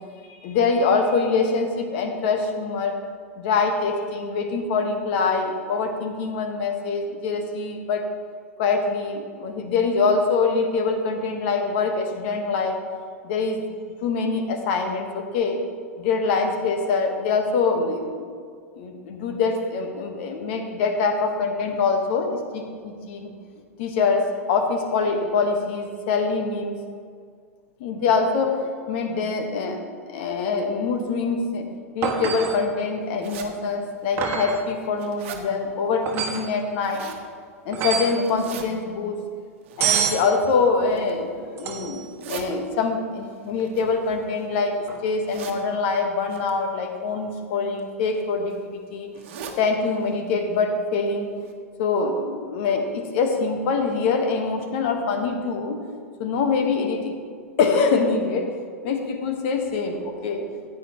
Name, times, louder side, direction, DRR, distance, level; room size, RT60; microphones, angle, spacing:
voice 1, 0.3-3.0 3.4-8.1 8.6-12.8 13.2-13.6 14.0-15.6 16.0-18.3 18.7-23.3 23.8-26.8 27.8-31.7 31.9-37.0 37.6-39.2 39.8-49.1 49.6-51.3 51.8-55.8 56.2-57.2 57.6-58.5 58.8-60.5, left 4 dB, 50° left, 5 dB, 1.4 m, -24 dB
sound 1, 32.0-32.7 34.2-34.7 36.1-36.5 37.7-38.2 39.8-40.3 41.6-42.1 44.8-45.0, right 7 dB, 30° right, 1.4 m, -26 dB
sound 2, 33.2-33.5 34.1-34.2 34.7-35.4 36.6-37.2 38.2-38.6 39.6-40.1 40.8-41.2 41.9-42.5 43.6-44.6 45.3-45.6 46.3-46.5 47.5-47.8 48.1-48.2 48.5-48.6 49.1-49.6 50.0-50.1 50.4-50.5 51.1-51.2 51.5-51.6, right 7 dB, 50° right, 1.3 m, -39 dB
15.0 x 9.1 x 3.1 m, 2.1 s
figure-of-eight pair, 90°, 8 cm